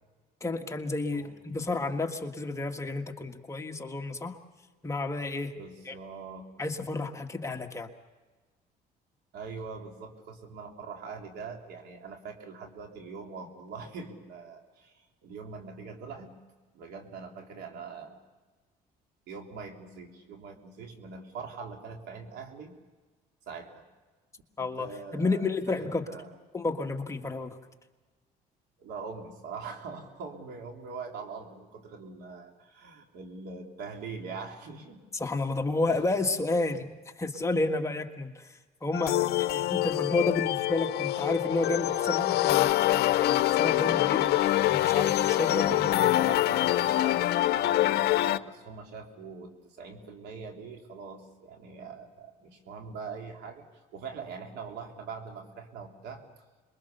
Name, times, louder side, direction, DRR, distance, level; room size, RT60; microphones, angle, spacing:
voice 1, 0.4-4.4 4.8-5.5 5.9-6.0 6.6-7.9 24.6-24.9 25.1-26.0 26.5-27.6 35.1-46.0, left 2 dB, 15° left, 3 dB, 1.7 m, -31 dB
voice 2, 5.6-6.5 9.3-16.4 16.7-18.2 19.3-22.8 23.5-23.9 24.6-26.4 28.8-35.0 35.9-36.0 45.7-56.2, right 5 dB, 80° right, 3 dB, 3.4 m, -43 dB
sound 1, 38.9-48.4, left 15 dB, 75° left, 0.7 m, -25 dB
27.0 x 22.5 x 6.8 m, 1.3 s
cardioid pair, 110°, 17 cm